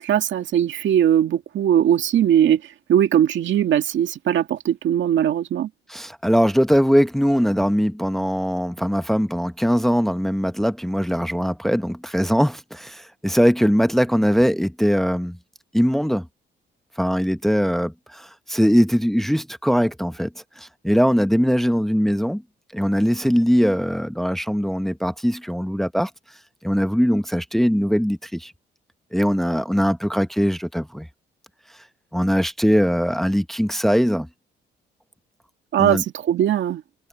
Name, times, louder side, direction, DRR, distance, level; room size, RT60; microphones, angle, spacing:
voice 1, 0.0-2.6 2.9-5.7 35.7-36.8, right 10 dB, 70° right, 2.0 m, -19 dB
voice 2, 5.9-15.4 15.7-16.3 17.0-20.3 20.6-22.4 22.7-26.1 26.6-28.5 29.1-31.1 32.1-34.3 35.8-36.0, equal, ahead, 1.0 m, -21 dB
cardioid pair, 90°, 20 cm